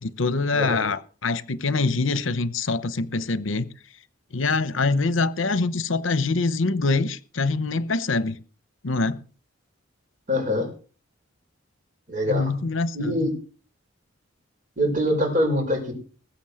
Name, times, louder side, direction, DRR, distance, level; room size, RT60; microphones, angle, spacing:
voice 1, 0.0-3.7 4.3-8.4 8.8-9.2 12.3-13.3, left 3 dB, 70° left, 0.9 m, -24 dB
voice 2, 0.5-0.9 10.3-10.7 12.1-12.5 12.9-13.3 14.8-15.9, left 1 dB, 40° right, 5.8 m, -24 dB
20.5 x 7.2 x 6.4 m
head